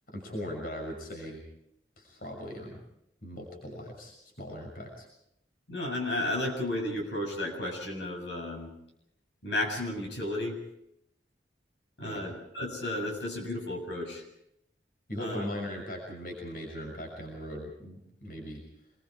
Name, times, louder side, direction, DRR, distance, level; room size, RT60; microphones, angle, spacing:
voice 1, 0.1-1.4 2.0-2.8 3.2-5.1 12.0-12.3 15.1-18.6, equal, 50° left, 1 dB, 6.2 m, -39 dB
voice 2, 5.7-8.7 9.4-10.6 12.0-14.2 15.2-15.5, left 1 dB, 75° left, 2 dB, 7.6 m, -33 dB
27.0 x 23.0 x 4.8 m, 0.76 s
head